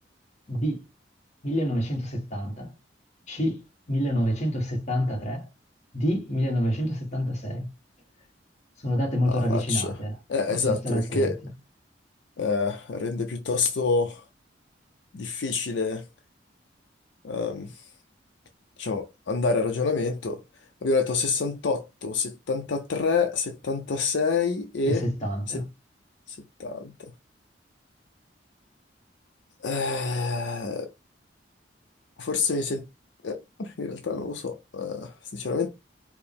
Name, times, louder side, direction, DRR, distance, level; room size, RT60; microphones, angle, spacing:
voice 1, 0.5-0.8 1.4-2.7 3.3-5.5 5.9-7.7 8.8-10.2 10.5-11.3 24.8-25.6, equal, 40° left, 1.2 m, -27 dB
voice 2, 9.2-9.9 10.3-11.4 12.4-14.2 15.1-16.1 17.2-17.9 18.8-20.4 20.8-25.1 25.5-25.6 26.3-27.1 29.6-30.9 32.2-32.8 33.2-35.7, left 4 dB, 75° left, 0.5 m, -27 dB
4.7 x 2.0 x 3.4 m
head